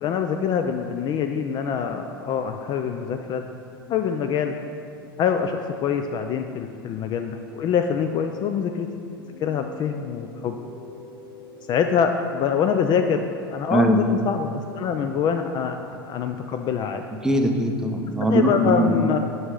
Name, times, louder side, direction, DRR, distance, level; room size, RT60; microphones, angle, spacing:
voice 1, 0.0-3.5 3.9-4.5 5.2-8.9 9.4-10.6 11.7-14.5 14.8-17.0 18.3-19.2, left 7 dB, 35° left, 6 dB, 0.4 m, -25 dB
sound 1, 9.1-15.2, left 5 dB, 65° left, 0.9 m, -45 dB
voice 2, 13.7-14.0 17.2-19.1, right 1 dB, 5° right, 3 dB, 0.6 m, -21 dB
6.7 x 5.6 x 3.7 m, 2.4 s
hypercardioid pair, 90°, 12 cm